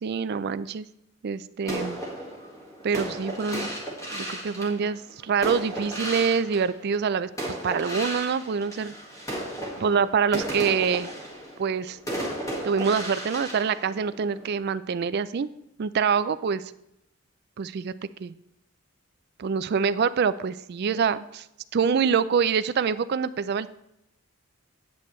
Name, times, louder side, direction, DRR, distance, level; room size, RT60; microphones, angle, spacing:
voice 1, 0.0-0.9 1.2-2.0 2.8-3.7 4.1-7.3 7.6-8.9 9.8-11.1 11.6-12.0 12.6-15.5 15.8-16.6 17.6-17.9 18.2-18.3 19.4-21.5 21.7-23.7, right 6 dB, 45° right, 15 dB, 0.3 m, -25 dB
sound 1, 1.6-7.0 7.4-14.5, right 1 dB, 15° left, 1.7 m, -35 dB
8.7 x 8.3 x 3.1 m, 0.83 s
head